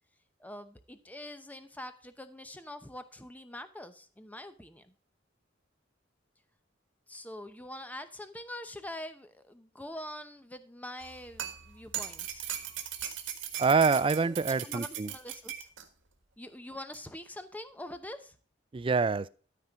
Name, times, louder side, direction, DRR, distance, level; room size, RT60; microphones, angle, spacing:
voice 1, 0.4-4.9 7.1-12.5 14.3-15.7 16.4-18.4, left 1 dB, 10° left, 0.8 m, -44 dB
sound 1, 11.0-15.8 16.9-17.0, right 10 dB, 90° right, 1.5 m, -39 dB
voice 2, 13.6-15.1 18.7-19.3, right 4 dB, 30° right, 0.4 m, -26 dB
13.0 x 4.4 x 5.0 m
head